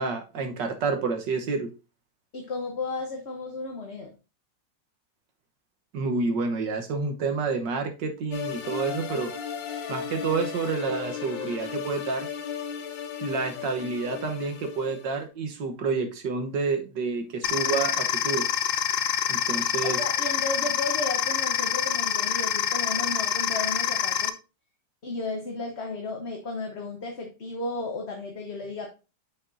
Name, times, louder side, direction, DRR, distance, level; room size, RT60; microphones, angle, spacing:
voice 1, 0.0-1.7 5.9-9.3 9.9-12.3 13.2-18.5 19.3-20.0, right 4 dB, 75° right, 5 dB, 1.8 m, -29 dB
voice 2, 2.3-4.1 19.8-24.4 25.0-28.9, left 3 dB, 40° left, 2 dB, 1.2 m, -34 dB
sound 1, 8.3-15.2, left 7 dB, 85° left, 1.6 m, -35 dB
sound 2, 17.4-24.3, left 9 dB, 65° left, 0.8 m, -26 dB
8.1 x 6.2 x 2.7 m, 0.30 s
omnidirectional pair, 1.9 m